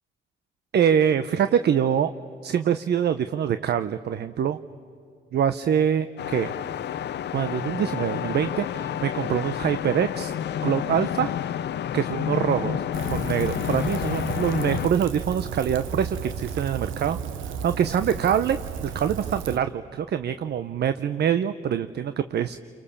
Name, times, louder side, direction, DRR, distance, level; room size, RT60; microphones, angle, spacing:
voice 1, 0.7-2.1 2.4-4.6 5.3-6.5 7.3-10.3 10.6-11.3 11.9-12.8 13.1-17.2 17.4-22.6, right 8 dB, 55° right, 11 dB, 0.8 m, -24 dB
sound 1, 6.2-14.9, left 10 dB, 60° left, 0.7 m, -29 dB
Rain, 12.9-19.6, right 7 dB, 85° right, 1.2 m, -34 dB
30.0 x 24.0 x 7.1 m, 2.4 s
cardioid pair, 90°, 20 cm